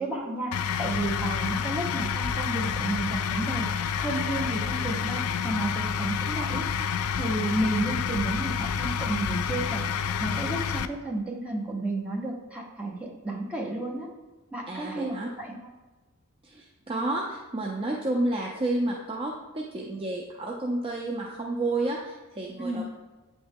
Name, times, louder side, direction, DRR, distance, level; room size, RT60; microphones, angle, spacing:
voice 1, 0.0-3.7 4.0-6.7 7.1-9.8 10.2-14.1 14.5-15.6 22.6-22.8, right 2 dB, 5° right, -3 dB, 0.9 m, -32 dB
sound 1, 0.5-10.9, left 7 dB, 70° left, 0.3 m, -29 dB
voice 2, 14.7-15.3 16.4-22.8, right 2 dB, 25° right, -1 dB, 0.4 m, -30 dB
8.5 x 3.1 x 3.5 m, 1.2 s
head